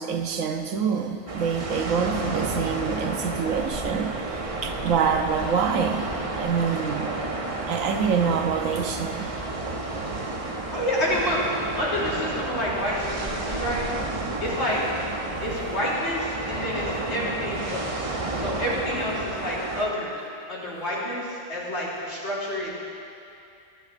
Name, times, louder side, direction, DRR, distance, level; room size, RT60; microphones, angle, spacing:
voice 1, 0.0-4.1 4.6-7.1 7.7-9.3 15.3-15.6, right 6 dB, 85° right, 5 dB, 1.2 m, -26 dB
sound 1, 1.3-19.9, right 2 dB, 30° right, 0.8 m, -31 dB
voice 2, 10.7-13.8 14.4-14.8 15.4-20.1 20.5-22.8, equal, 55° left, -7 dB, 3.5 m, -29 dB
23.5 x 10.5 x 2.6 m, 2.6 s
omnidirectional pair, 1.3 m